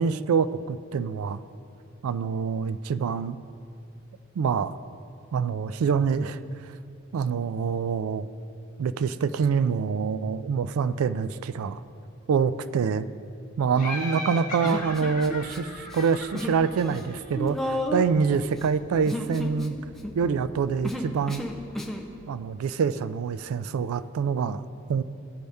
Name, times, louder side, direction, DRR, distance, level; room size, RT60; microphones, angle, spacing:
voice 1, 0.0-1.4 2.0-3.4 4.4-4.8 5.3-6.4 7.1-8.3 8.8-11.8 12.3-13.1 13.6-19.8 20.1-21.5 22.3-25.0, right 6 dB, 85° right, 14 dB, 0.3 m, -26 dB
Laughter, 13.8-17.4, left 2 dB, 40° left, 1.2 m, -37 dB
Human voice, 14.6-15.6 15.9-16.6 16.9-22.1, left 1 dB, ahead, 0.5 m, -32 dB
15.0 x 5.3 x 3.5 m, 2.5 s
head